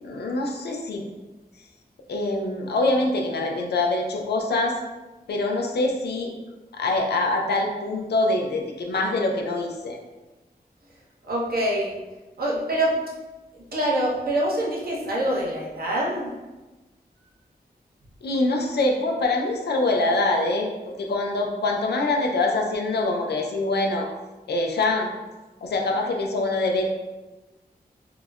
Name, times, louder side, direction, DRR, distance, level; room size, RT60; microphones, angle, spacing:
voice 1, 0.0-1.1 2.1-4.8 5.3-6.3 6.7-10.0 18.2-24.1 24.5-25.1 25.6-26.9, left 2 dB, 85° left, 1 dB, 0.4 m, -24 dB
voice 2, 11.2-12.0 12.4-12.9 13.5-16.3, right 1 dB, 65° right, -4 dB, 0.7 m, -25 dB
3.7 x 2.0 x 2.3 m, 1.2 s
wide cardioid pair, 100°, 17 cm